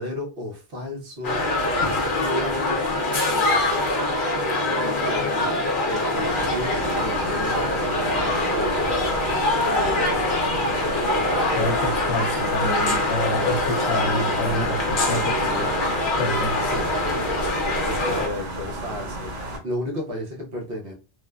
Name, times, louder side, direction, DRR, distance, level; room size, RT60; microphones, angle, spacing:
voice 1, 0.0-1.4 2.1-2.9 5.0-5.6 5.9-10.6 17.8-20.9, left 1 dB, 60° right, 1.0 m, -33 dB
sound 1, 1.2-18.3, left 2 dB, 50° left, 0.8 m, -24 dB
sound 2, 6.1-19.6, right 1 dB, 85° right, 1.2 m, -33 dB
voice 2, 11.6-15.7 16.2-16.9, left 1 dB, 85° left, 0.9 m, -28 dB
3.1 x 2.1 x 2.3 m
omnidirectional pair, 1.2 m